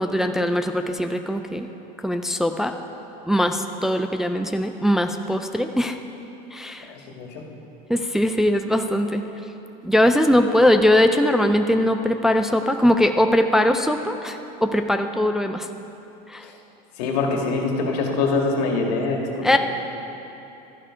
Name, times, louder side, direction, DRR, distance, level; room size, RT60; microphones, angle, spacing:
voice 1, 0.0-1.7 2.0-2.7 3.3-6.0 6.5-6.9 7.9-9.2 9.8-15.7 16.3-16.4 19.4-19.6, left 1 dB, ahead, 6 dB, 0.4 m, -20 dB
voice 2, 6.9-7.4 17.0-19.5, left 3 dB, 85° left, 1 dB, 2.0 m, -24 dB
12.5 x 11.0 x 5.0 m, 2.9 s
supercardioid pair, 130°, 20 cm